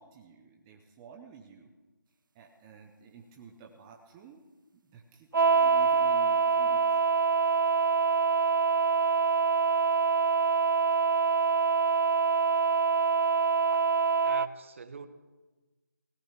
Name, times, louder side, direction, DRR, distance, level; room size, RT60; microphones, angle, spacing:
voice 1, 0.0-1.7 2.1-4.4 4.7-7.0, right 6 dB, 10° right, 1 dB, 0.6 m, -52 dB
sound 1, 5.3-14.5, right 5 dB, 75° right, 0.4 m, -25 dB
voice 2, 14.2-15.1, right 5 dB, 40° right, 11 dB, 1.0 m, -43 dB
17.0 x 10.5 x 8.0 m, 1.2 s
figure-of-eight pair, 165°, 11 cm